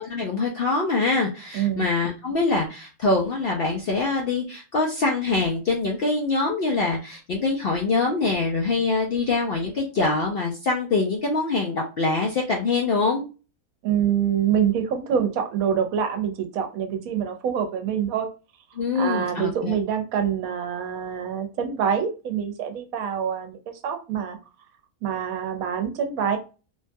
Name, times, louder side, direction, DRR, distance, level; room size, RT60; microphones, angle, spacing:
voice 1, 0.0-13.3 18.8-19.7, left 3 dB, 65° left, 0 dB, 0.6 m, -24 dB
voice 2, 1.5-1.8 13.8-18.3 18.9-24.4 25.0-26.4, right 8 dB, 75° right, 6 dB, 1.0 m, -25 dB
3.2 x 2.2 x 2.6 m, 0.32 s
omnidirectional pair, 1.5 m